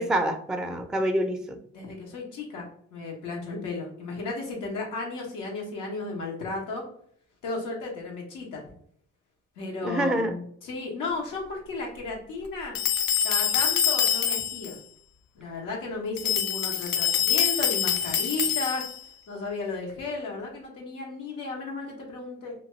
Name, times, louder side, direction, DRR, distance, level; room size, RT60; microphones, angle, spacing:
voice 1, 0.0-1.6 9.8-10.3, right 1 dB, ahead, 4 dB, 0.3 m, -26 dB
voice 2, 1.7-2.7 2.9-6.8 7.4-8.6 9.6-12.8 13.2-14.8 15.3-18.9 19.3-22.5, left 3 dB, 90° left, -1 dB, 1.0 m, -34 dB
sound 1, 12.7-14.7 16.2-19.0, left 9 dB, 65° left, 0.5 m, -25 dB
2.8 x 2.3 x 2.9 m, 0.63 s
cardioid pair, 90°, 30 cm